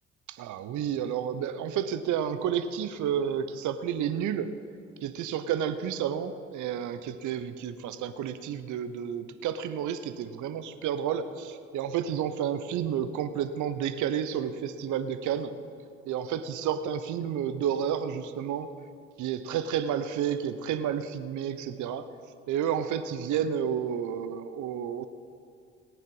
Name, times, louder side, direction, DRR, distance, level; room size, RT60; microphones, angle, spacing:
voice 1, 0.3-4.5 5.0-15.5 16.0-18.7 19.2-22.1 22.5-25.1, right 8 dB, 60° right, 11 dB, 0.8 m, -31 dB
18.0 x 9.2 x 5.5 m, 2.3 s
hypercardioid pair, 50°, 35 cm